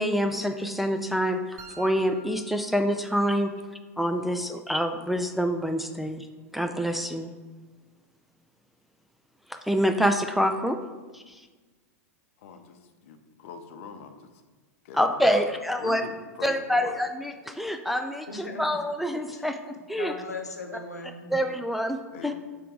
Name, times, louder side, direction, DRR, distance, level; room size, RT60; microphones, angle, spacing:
voice 1, 0.0-3.5 4.0-6.3 6.5-7.3 9.5-10.8 11.1-11.5 14.9-16.0 16.4-20.1 21.3-22.3, equal, ahead, 6 dB, 0.3 m, -26 dB
sound 1, 1.6-3.6, right 2 dB, 40° right, 0.9 m, -49 dB
voice 2, 12.4-14.4 14.8-16.9 22.1-22.3, left 6 dB, 55° left, 7 dB, 0.7 m, -43 dB
voice 3, 18.3-18.8 19.3-19.5 19.9-21.4 22.1-22.2, left 3 dB, 85° left, 4 dB, 0.9 m, -38 dB
5.9 x 3.6 x 4.7 m, 1.3 s
figure-of-eight pair, 95°, 9 cm